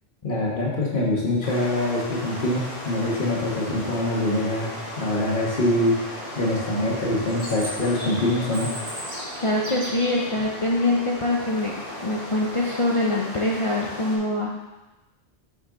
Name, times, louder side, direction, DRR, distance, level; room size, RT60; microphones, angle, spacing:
voice 1, 0.2-4.7 5.0-6.0 6.4-8.7, left 1 dB, 50° left, -3 dB, 1.5 m, -24 dB
sound 1, 1.4-14.2, left 1 dB, 85° left, 2.0 m, -36 dB
Chirp tweet, 7.3-10.3, right 1 dB, 50° right, 1.7 m, -36 dB
voice 2, 9.4-14.5, left 2 dB, 35° left, -3 dB, 0.6 m, -24 dB
5.9 x 5.6 x 3.8 m, 1.1 s
omnidirectional pair, 1.1 m